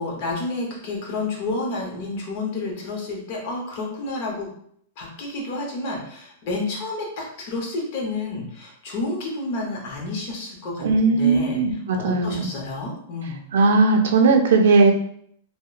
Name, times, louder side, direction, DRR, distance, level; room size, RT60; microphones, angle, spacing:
voice 1, 0.0-4.5 5.0-11.6 12.0-13.4, left 2 dB, 45° left, -1 dB, 0.7 m, -30 dB
voice 2, 10.8-12.5 13.5-14.9, right 3 dB, 80° right, 3 dB, 0.5 m, -18 dB
2.9 x 2.0 x 2.3 m, 0.66 s
supercardioid pair, 165°, 0 cm